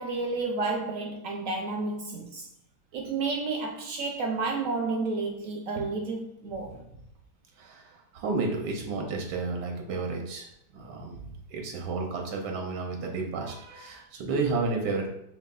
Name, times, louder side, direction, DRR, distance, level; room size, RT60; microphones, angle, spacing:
voice 1, 0.0-2.5 2.9-6.8, right 3 dB, 70° right, 2 dB, 0.8 m, -31 dB
voice 2, 7.6-10.5 10.7-15.1, right 3 dB, 90° right, 1 dB, 1.3 m, -32 dB
6.4 x 2.4 x 2.3 m, 0.77 s
omnidirectional pair, 1.8 m